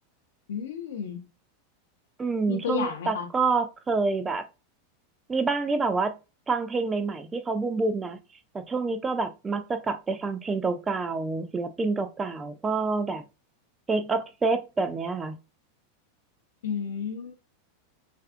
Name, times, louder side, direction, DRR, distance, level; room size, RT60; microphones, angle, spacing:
voice 1, 0.5-1.3 2.5-3.3 16.6-17.4, left 7 dB, 60° left, 0.6 m, -32 dB
voice 2, 2.2-4.4 5.3-6.2 6.5-8.2 8.5-13.2 13.9-15.4, right 4 dB, 15° right, 0.3 m, -27 dB
2.5 x 2.3 x 2.3 m
figure-of-eight pair, 90°, 0 cm